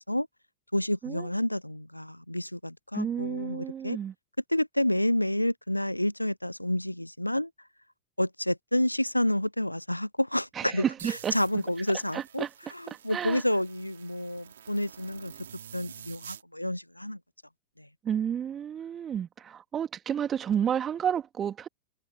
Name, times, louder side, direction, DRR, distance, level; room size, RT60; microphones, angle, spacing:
voice 1, 0.7-4.0 4.5-7.5 8.2-10.8 11.3-12.5 12.7-15.3 15.7-17.2 17.8-17.9, left 1 dB, 90° left, 0.4 m, -29 dB
voice 2, 2.9-4.1 10.6-11.6 12.1-13.4 18.0-21.7, right 8 dB, 25° right, 2.4 m, -31 dB
sound 1, 11.0-16.4, right 9 dB, 65° right, 5.6 m, -48 dB
figure-of-eight pair, 90°, 0 cm